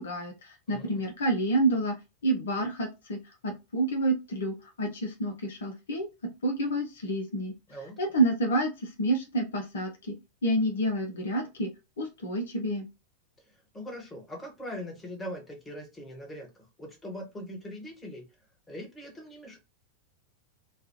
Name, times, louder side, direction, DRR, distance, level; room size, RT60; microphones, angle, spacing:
voice 1, 0.0-2.0 2.2-7.5 8.0-10.2 10.4-11.7 12.0-12.9, right 2 dB, 65° left, 4 dB, 0.6 m, -29 dB
voice 2, 0.7-1.0 7.7-7.9 13.4-16.5 16.8-18.2 18.7-19.6, equal, 15° left, 0 dB, 1.3 m, -41 dB
3.1 x 2.2 x 2.8 m, 0.26 s
figure-of-eight pair, 90°, 0 cm